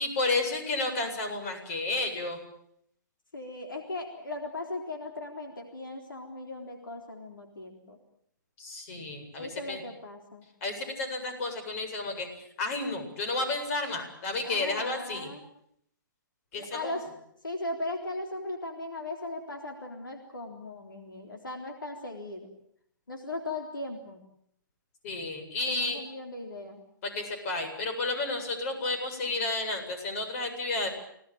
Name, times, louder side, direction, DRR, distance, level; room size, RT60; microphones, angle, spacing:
voice 1, 0.0-2.4 8.6-9.8 10.6-12.3 12.6-15.3 16.5-17.0 25.0-26.0 27.0-30.9, left 2 dB, 45° left, 7 dB, 7.8 m, -31 dB
voice 2, 3.3-8.0 9.4-10.5 14.4-15.4 16.5-17.1 17.4-22.5 23.1-24.2 25.7-26.8, left 2 dB, 85° left, 3 dB, 3.8 m, -38 dB
27.5 x 18.5 x 9.2 m, 0.72 s
figure-of-eight pair, 125°, 11 cm